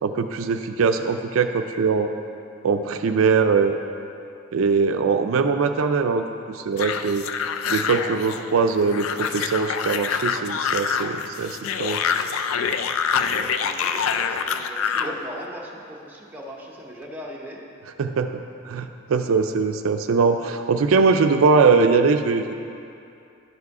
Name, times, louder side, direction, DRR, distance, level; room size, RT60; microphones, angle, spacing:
voice 1, 0.0-2.1 2.6-3.8 4.5-7.2 7.7-12.0 18.0-18.3 18.6-22.5, right 4 dB, 85° right, 7 dB, 0.4 m, -21 dB
sound 1, 6.8-15.2, left 6 dB, 90° left, 0.4 m, -26 dB
voice 2, 13.2-17.6, equal, 10° right, -3 dB, 0.9 m, -39 dB
10.5 x 4.8 x 4.7 m, 2.6 s
head